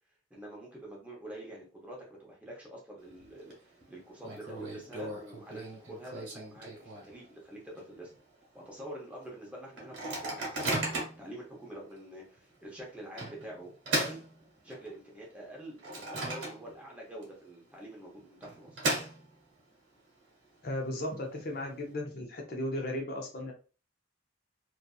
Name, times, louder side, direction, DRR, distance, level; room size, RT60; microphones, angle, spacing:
voice 1, 0.3-8.1 8.5-14.2 14.6-18.8, right 1 dB, 5° right, -3 dB, 0.7 m, -46 dB
Microwave oven, 3.0-3.5 3.8-3.9 4.2-7.3 7.7-7.8 8.1-8.4 8.9-9.0 9.8-11.3 11.9-12.0 13.2-15.0 15.4-16.9 17.2-17.3 18.2-19.6, right 2 dB, 70° right, 1.0 m, -36 dB
voice 2, 20.6-23.5, left 1 dB, 50° left, 1 dB, 0.6 m, -35 dB
2.6 x 2.5 x 2.3 m, 0.36 s
head